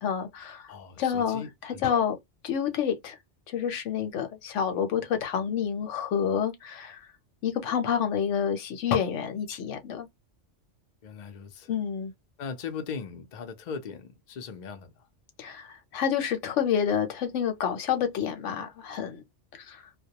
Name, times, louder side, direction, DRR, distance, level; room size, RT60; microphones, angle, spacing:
voice 1, 0.0-0.6 1.0-2.2 2.4-3.1 3.5-7.0 7.4-10.1 11.7-12.1 15.4-19.2 19.7-19.8, left 8 dB, 90° left, 1.0 m, -28 dB
voice 2, 0.7-1.8 11.0-11.7 12.4-15.1, left 6 dB, 50° left, 0.6 m, -39 dB
2.2 x 2.1 x 2.8 m
omnidirectional pair, 1.2 m